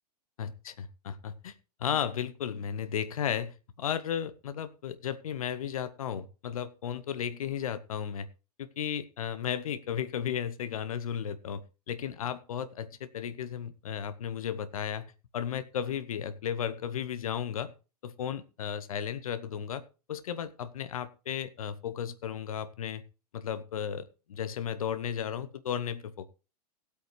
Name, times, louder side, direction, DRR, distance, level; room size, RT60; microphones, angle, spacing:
voice 1, 0.4-1.5 1.8-8.3 8.6-15.0 15.3-17.7 18.0-19.8 20.1-23.0 23.3-26.3, left 8 dB, 60° left, 13 dB, 1.1 m, -34 dB
18.0 x 8.4 x 3.3 m, 0.33 s
figure-of-eight pair, 100°, 20 cm